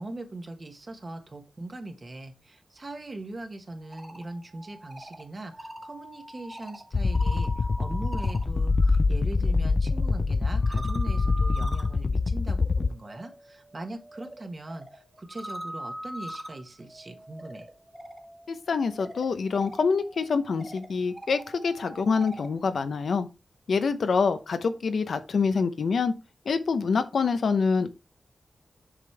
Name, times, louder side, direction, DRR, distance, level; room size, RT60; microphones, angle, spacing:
voice 1, 0.0-17.7, right 2 dB, 40° right, 1.5 m, -40 dB
sound 1, 3.7-9.0 9.3-22.6, right 1 dB, 10° right, 1.5 m, -43 dB
sound 2, 6.9-12.9, left 3 dB, 55° left, 0.3 m, -25 dB
voice 2, 18.5-23.3 23.7-26.1 26.5-27.9, left 5 dB, 80° left, 0.8 m, -26 dB
7.2 x 5.3 x 3.4 m
wide cardioid pair, 80°, 0 cm